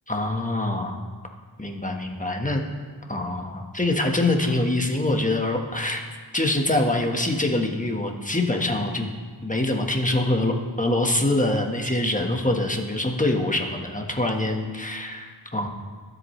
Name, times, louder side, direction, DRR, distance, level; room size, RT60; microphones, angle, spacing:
voice 1, 0.1-0.9 1.6-2.6 3.1-6.0 6.3-9.1 9.4-15.7, left 2 dB, 15° left, 2 dB, 1.5 m, -24 dB
23.5 x 8.1 x 3.3 m, 1.5 s
wide cardioid pair, 55°, 44 cm